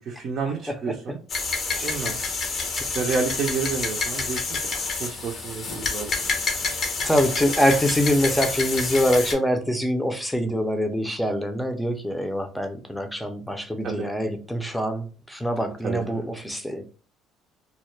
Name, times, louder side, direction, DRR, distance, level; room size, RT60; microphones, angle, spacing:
voice 1, 0.0-1.2 1.8-2.2 2.9-4.5 4.7-6.2 13.8-14.1 15.8-16.2, right 5 dB, 55° right, 0.5 m, -30 dB
sound 1, 1.3-9.3, left 4 dB, 45° left, 0.7 m, -28 dB
voice 2, 1.7-2.1 7.0-16.8, equal, 5° left, 0.6 m, -24 dB
2.3 x 2.0 x 3.1 m
supercardioid pair, 75°, 0 cm